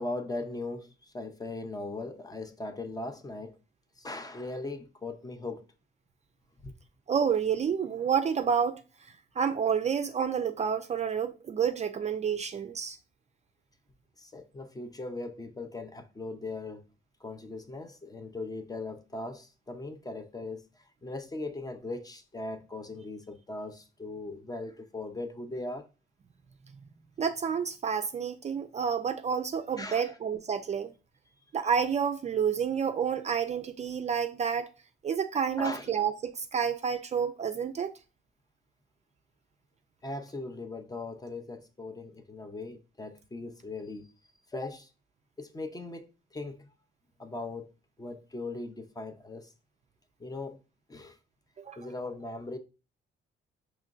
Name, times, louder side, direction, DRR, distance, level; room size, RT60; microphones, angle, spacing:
voice 1, 0.0-3.6 4.0-5.7 6.6-6.7 14.2-16.8 17.2-20.6 21.0-25.9 29.8-30.1 35.6-35.9 40.0-44.1 44.5-44.9 45.4-46.7 47.2-47.7 48.0-49.5 50.2-50.6 50.9-51.2 51.8-52.6, left 2 dB, 20° left, 0.5 m, -39 dB
voice 2, 7.1-8.8 9.4-13.0 27.2-30.9 31.5-34.7 35.0-37.9 51.6-51.8, right 7 dB, 35° right, 0.4 m, -29 dB
4.9 x 3.0 x 2.4 m
cardioid pair, 90°, 20 cm